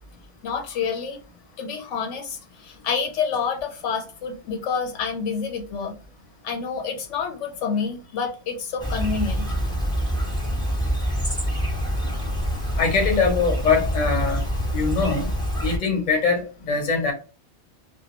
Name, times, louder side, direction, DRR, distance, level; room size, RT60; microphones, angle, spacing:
voice 1, 0.4-1.2 1.6-5.9 6.4-9.5, left 5 dB, 90° left, 3 dB, 1.0 m, -28 dB
Chirp tweet, 8.8-15.8, equal, 5° left, 0.4 m, -26 dB
voice 2, 12.8-14.4 14.7-15.3 15.6-17.1, left 4 dB, 45° left, 2 dB, 0.8 m, -22 dB
2.2 x 2.2 x 2.9 m, 0.35 s
omnidirectional pair, 1.2 m